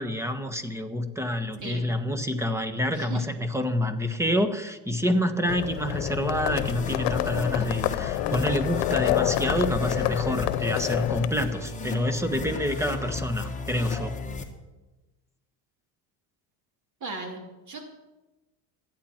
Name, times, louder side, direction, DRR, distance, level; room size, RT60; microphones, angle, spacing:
voice 1, 0.0-14.1, equal, 5° right, 8 dB, 1.4 m, -27 dB
voice 2, 1.6-1.9 2.9-3.2 17.0-17.9, right 3 dB, 40° right, 3 dB, 2.9 m, -37 dB
Livestock farm animals working animals, 5.5-11.3, left 14 dB, 75° left, 1.0 m, -28 dB
sound 1, 6.4-14.4, left 3 dB, 15° left, 1.8 m, -35 dB
26.5 x 9.6 x 4.5 m, 1.1 s
cardioid pair, 115°, 46 cm